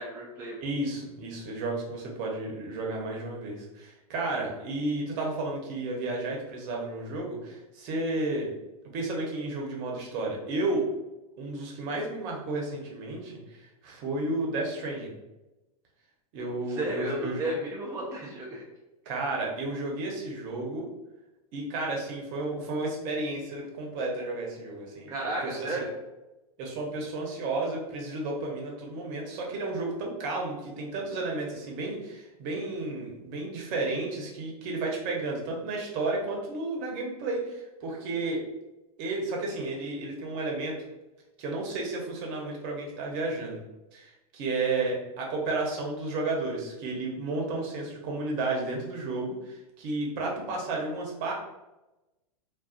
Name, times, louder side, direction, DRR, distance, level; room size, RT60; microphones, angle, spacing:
voice 1, 0.0-0.6 16.4-18.7 25.1-25.9, right 1 dB, 15° right, -3 dB, 0.3 m, -33 dB
voice 2, 0.6-8.5 8.9-10.8 11.4-15.1 16.3-17.4 19.1-20.9 21.5-25.1 25.4-25.8 26.6-38.4 39.0-40.8 41.4-43.6 43.9-51.3, right 2 dB, 45° right, -1 dB, 0.7 m, -32 dB
2.4 x 2.3 x 2.4 m, 1.0 s
hypercardioid pair, 120°, 19 cm